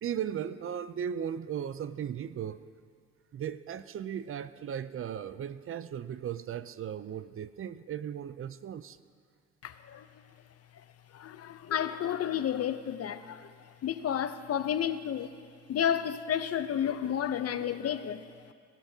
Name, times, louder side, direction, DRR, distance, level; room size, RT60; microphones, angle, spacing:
voice 1, 0.0-2.6 3.3-9.0, right 9 dB, 45° right, 14 dB, 0.5 m, -37 dB
voice 2, 9.6-10.1 11.1-13.5 13.8-15.3 15.7-18.3, left 9 dB, 55° left, 12 dB, 0.7 m, -31 dB
18.0 x 16.0 x 2.8 m, 2.1 s
cardioid pair, 90°, 30 cm